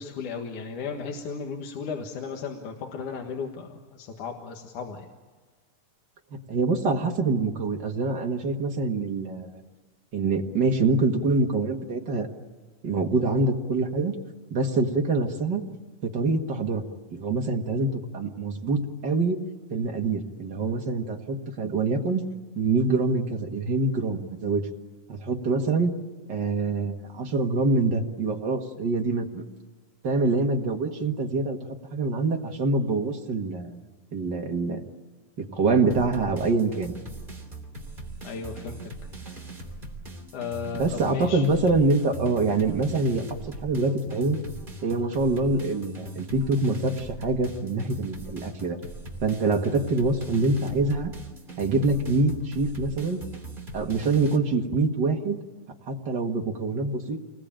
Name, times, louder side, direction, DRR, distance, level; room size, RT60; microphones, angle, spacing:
voice 1, 0.0-5.1 38.2-38.8 40.3-41.6, left 5 dB, 70° left, 2 dB, 3.1 m, -35 dB
voice 2, 6.3-9.5 10.1-12.3 12.8-14.2 14.5-15.6 16.0-16.8 17.1-19.4 19.7-22.2 22.6-24.7 25.1-25.9 26.3-29.4 30.0-31.6 31.9-33.8 34.1-34.8 35.4-36.9 40.7-43.2 43.6-44.4 44.8-48.8 49.2-51.1 51.6-53.2 53.7-55.4 55.9-57.2, right 3 dB, 40° right, 2 dB, 1.9 m, -25 dB
sound 1, 35.9-54.4, right 1 dB, 15° right, 2.8 m, -40 dB
28.0 x 21.0 x 8.9 m, 1.4 s
omnidirectional pair, 3.7 m